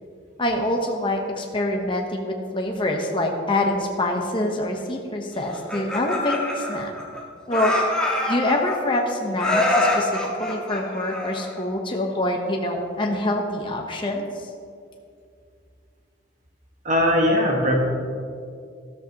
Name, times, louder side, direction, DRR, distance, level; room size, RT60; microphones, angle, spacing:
voice 1, 0.4-6.9 7.5-14.5, left 1 dB, 25° left, 1 dB, 0.9 m, -25 dB
Laughter, 5.5-7.2 7.5-9.0 9.4-11.6, left 1 dB, 5° left, 1.5 m, -25 dB
voice 2, 16.8-17.8, equal, 40° right, 0 dB, 1.5 m, -19 dB
13.0 x 13.0 x 2.9 m, 2.4 s
head